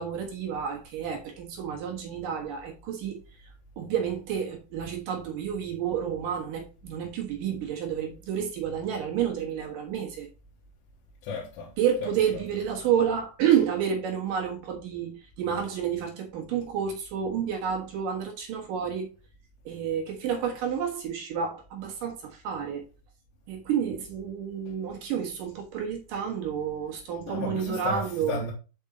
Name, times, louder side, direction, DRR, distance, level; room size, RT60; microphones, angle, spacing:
voice 1, 0.0-3.2 3.8-10.3 11.8-19.1 19.6-22.8 23.5-28.4, right 8 dB, 60° right, 2.5 m, -30 dB
voice 2, 11.2-11.7 12.0-12.4 24.7-24.8 27.3-28.5, left 4 dB, 75° left, 3.5 m, -34 dB
7.1 x 5.3 x 3.8 m
omnidirectional pair, 5.3 m